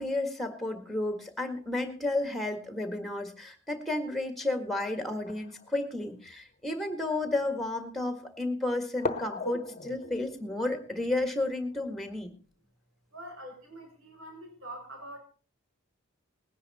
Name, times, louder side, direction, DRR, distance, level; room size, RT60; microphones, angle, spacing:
voice 1, 0.0-12.3, left 2 dB, ahead, 7 dB, 1.8 m, -32 dB
sound 1, 3.7-3.8 5.1-6.4 7.1-7.2 9.0-12.1, left 3 dB, 35° left, 1.0 m, -39 dB
voice 2, 13.1-15.2, right 1 dB, 70° right, 1 dB, 5.6 m, -44 dB
19.5 x 10.5 x 4.2 m, 0.38 s
head